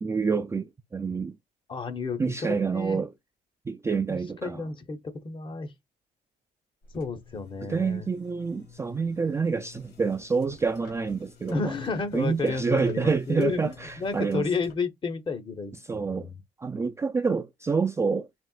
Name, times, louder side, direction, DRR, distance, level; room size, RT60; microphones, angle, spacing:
voice 1, 0.0-1.4 2.2-3.1 3.7-4.6 7.6-11.7 12.1-14.5 15.9-16.3 16.6-18.3, right 5 dB, 15° right, 0.3 m, -27 dB
voice 2, 1.7-2.2 2.6-3.0 4.1-5.7 6.9-8.1 11.5-16.4, left 4 dB, 30° left, 1.0 m, -32 dB
sound 1, 6.8-14.7, left 6 dB, 75° left, 2.1 m, -52 dB
4.3 x 3.5 x 2.4 m
cardioid pair, 110°, 17 cm